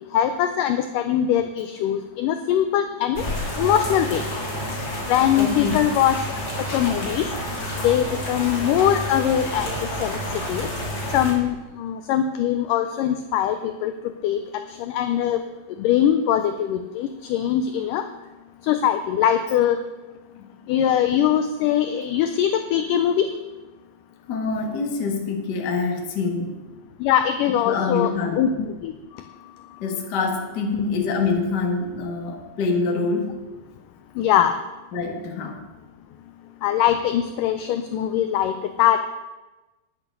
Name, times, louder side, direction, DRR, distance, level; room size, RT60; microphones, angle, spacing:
voice 1, 0.1-3.3 3.6-4.2 5.1-6.3 6.7-7.3 7.8-10.2 10.5-10.7 11.1-13.9 14.2-14.4 14.7-15.4 15.8-18.0 18.6-19.8 20.7-23.3 27.0-28.9 34.2-34.5 36.6-38.5 38.8-39.0, left 10 dB, 85° left, 9 dB, 1.9 m, -22 dB
sound 1, 3.2-11.3, equal, 30° left, 2.4 m, -29 dB
voice 2, 5.3-5.8 20.4-20.5 24.3-26.6 27.6-28.4 29.8-33.4 34.9-35.7, left 4 dB, 60° left, 2 dB, 1.1 m, -25 dB
10.5 x 8.4 x 6.7 m, 1.1 s
omnidirectional pair, 4.5 m